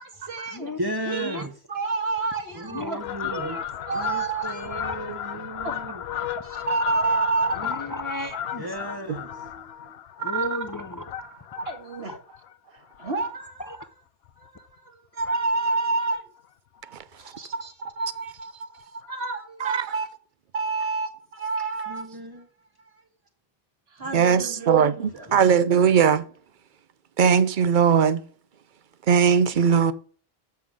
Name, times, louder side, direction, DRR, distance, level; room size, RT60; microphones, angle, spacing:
voice 1, 0.0-0.7 1.1-3.0 3.3-5.1 5.6-5.8 6.4-7.5 10.2-10.7 11.7-12.2 13.0-13.8 14.4-16.3 17.2-20.1 20.5-22.0 22.9-23.0 23.9-25.2, right 3 dB, 70° right, 1.9 m, -29 dB
voice 2, 0.8-1.5 2.5-3.6 3.9-6.0 8.6-10.0 21.9-22.5 24.0-25.4, right 1 dB, 25° right, 1.0 m, -36 dB
voice 3, 2.7-3.3 4.9-5.0 7.6-8.6 10.2-11.0 13.7-13.9, left 1 dB, 30° left, 0.3 m, -34 dB
Fowl, 3.0-13.8 14.2-14.5 15.2-15.8 16.1-16.2 16.4-16.5 16.8-16.9 17.2-17.4 18.4-18.5 19.0-19.1, left 10 dB, 75° left, 0.9 m, -35 dB
voice 4, 24.1-26.3 27.2-28.2 29.1-29.9, right 7 dB, 55° right, 0.7 m, -19 dB
7.7 x 5.8 x 4.9 m
omnidirectional pair, 1.1 m